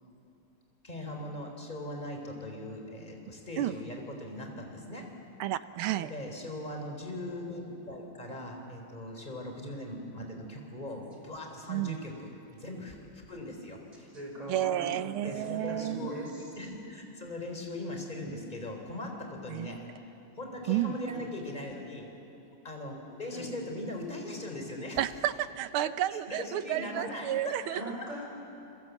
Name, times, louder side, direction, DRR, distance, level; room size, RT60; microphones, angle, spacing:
voice 1, 0.8-5.1 5.9-14.1 15.2-16.1 16.6-19.8 20.4-22.1 22.6-25.0 26.1-28.1, left 1 dB, 20° left, 2 dB, 3.9 m, -40 dB
voice 2, 5.4-6.1 11.7-12.0 14.5-16.1 19.5-19.7 20.7-21.0 25.0-27.8, right 13 dB, 75° right, 13 dB, 1.6 m, -31 dB
voice 3, 14.1-14.9 15.2-16.5 21.1-21.3 23.3-23.5 27.7-28.2, equal, 15° right, -1 dB, 5.7 m, -41 dB
30.0 x 22.0 x 8.2 m, 2.9 s
omnidirectional pair, 2.4 m